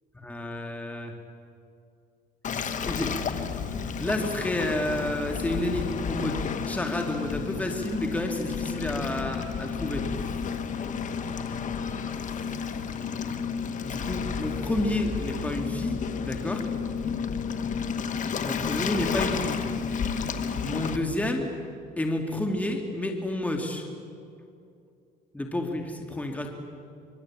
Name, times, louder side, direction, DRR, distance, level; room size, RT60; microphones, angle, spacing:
voice 1, 0.1-1.1 2.5-3.2 4.0-10.1 13.8-16.6 18.4-19.6 20.6-21.5 22.0-23.9 25.3-26.5, left 1 dB, 10° left, 2 dB, 2.5 m, -30 dB
Waves surf, 2.4-21.0, left 6 dB, 50° left, 1.8 m, -31 dB
25.0 x 23.0 x 8.8 m, 2.4 s
cardioid pair, 110°, 17 cm